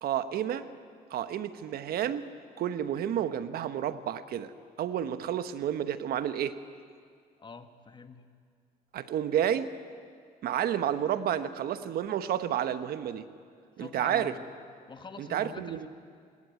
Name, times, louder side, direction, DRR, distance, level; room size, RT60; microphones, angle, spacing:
voice 1, 0.0-0.7 1.1-2.3 2.6-4.5 4.8-6.6 8.9-9.7 10.4-13.3 13.8-14.4 15.2-15.9, right 10 dB, 65° right, 11 dB, 1.2 m, -30 dB
voice 2, 7.4-8.3 13.8-14.5 14.9-15.9, left 4 dB, 30° left, 8 dB, 1.7 m, -46 dB
26.0 x 19.5 x 9.6 m, 2.1 s
cardioid pair, 110°, 17 cm